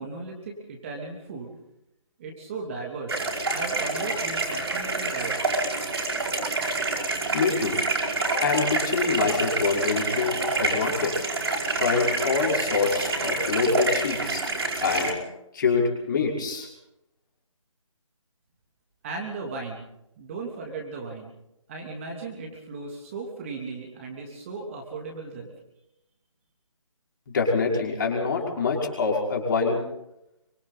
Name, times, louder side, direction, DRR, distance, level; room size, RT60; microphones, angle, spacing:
voice 1, 0.0-1.6 2.2-5.4 19.0-19.9 20.2-21.3 21.7-25.5, right 3 dB, 25° right, 0 dB, 2.9 m, -36 dB
sound 1, 3.1-15.1, right 3 dB, 50° right, 5.2 m, -27 dB
voice 2, 7.3-7.8 8.2-11.2 11.7-14.4 14.8-15.1 15.5-16.7 27.3-29.8, left 4 dB, 35° left, -1 dB, 5.5 m, -25 dB
27.0 x 25.0 x 4.2 m, 0.85 s
figure-of-eight pair, 155°, 17 cm